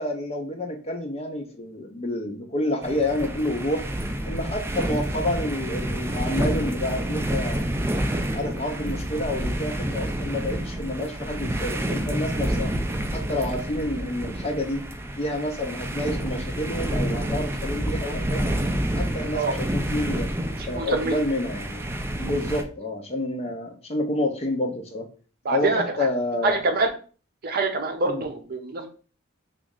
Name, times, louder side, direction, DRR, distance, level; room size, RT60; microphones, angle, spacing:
voice 1, 0.0-3.8 4.2-7.7 8.3-12.7 13.1-14.8 15.2-18.5 18.9-20.3 20.7-21.8 22.2-25.1 25.5-26.6 28.0-28.2, left 1 dB, 30° left, 3 dB, 0.6 m, -29 dB
sound 1, 2.8-22.6, right 1 dB, 10° right, 0.3 m, -29 dB
voice 2, 20.6-21.2 25.4-26.1 26.4-26.9 27.4-28.9, right 3 dB, 50° right, 5 dB, 0.6 m, -25 dB
3.1 x 2.4 x 3.6 m, 0.39 s
head